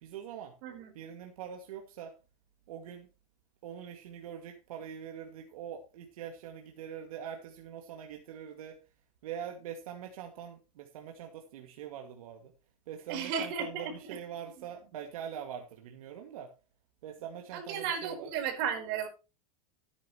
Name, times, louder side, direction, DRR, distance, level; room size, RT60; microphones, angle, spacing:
voice 1, 0.0-0.5 0.9-2.1 2.7-3.1 3.6-8.8 9.2-12.5 12.9-16.5 17.0-18.3, right 8 dB, 85° right, 3 dB, 2.3 m, -43 dB
voice 2, 0.6-0.9 13.1-13.9 17.5-19.1, right 7 dB, 55° right, 3 dB, 4.7 m, -34 dB
14.5 x 9.8 x 3.2 m, 0.31 s
supercardioid pair, 135°, 18 cm